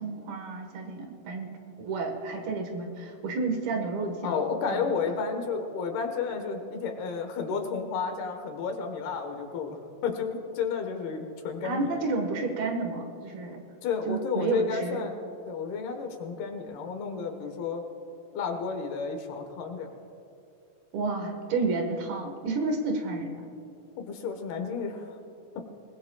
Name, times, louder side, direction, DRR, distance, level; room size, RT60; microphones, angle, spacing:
voice 1, 0.0-5.1 11.6-13.6 14.1-15.1 20.9-23.5, right 3 dB, 70° right, 3 dB, 3.2 m, -31 dB
voice 2, 4.2-11.9 13.8-17.8 18.3-19.9 24.0-25.1, left 5 dB, 75° left, 5 dB, 3.2 m, -32 dB
27.0 x 19.0 x 2.4 m, 2.6 s
omnidirectional pair, 4.6 m